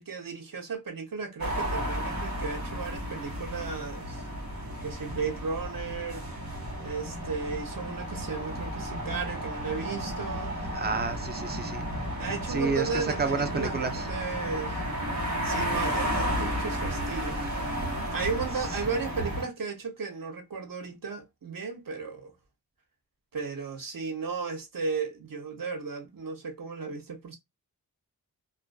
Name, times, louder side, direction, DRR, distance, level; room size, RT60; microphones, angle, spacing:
voice 1, 0.0-4.2 4.8-6.3 6.8-10.6 12.2-14.8 15.1-17.4 18.1-22.3 23.3-27.4, right 5 dB, 65° right, 0.7 m, -35 dB
sound 1, 1.4-19.4, equal, 80° right, 1.2 m, -33 dB
voice 2, 10.7-11.9 12.5-14.0, right 4 dB, 30° right, 0.4 m, -30 dB
2.4 x 2.3 x 2.2 m
wide cardioid pair, 65°, 36 cm